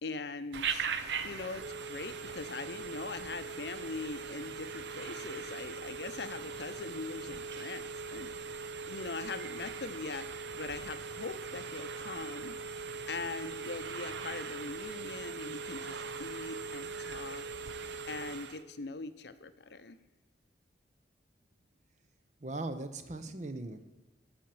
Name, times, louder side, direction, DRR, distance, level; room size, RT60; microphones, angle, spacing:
voice 1, 0.0-0.9 1.2-12.5 13.1-17.5 18.1-20.0, left 3 dB, 70° left, 11 dB, 0.7 m, -42 dB
Telephone, 0.5-18.6, right 5 dB, 75° right, 0.7 m, -40 dB
voice 2, 22.4-23.8, right 2 dB, 40° right, 9 dB, 0.8 m, -39 dB
12.5 x 4.4 x 7.7 m, 1.2 s
head